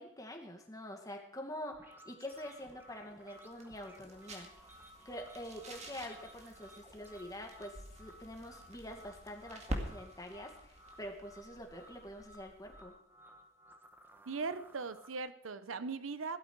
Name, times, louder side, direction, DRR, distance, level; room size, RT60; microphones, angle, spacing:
voice 1, 0.0-4.5 5.1-12.9, left 1 dB, 20° left, 3 dB, 1.9 m, -46 dB
sound 1, 1.7-15.2, equal, 10° right, 1.2 m, -58 dB
sound 2, 2.3-13.0, right 1 dB, 35° right, 2.1 m, -48 dB
voice 2, 14.3-16.4, right 4 dB, 90° right, 13 dB, 0.8 m, -39 dB
16.5 x 12.5 x 4.7 m, 0.75 s
head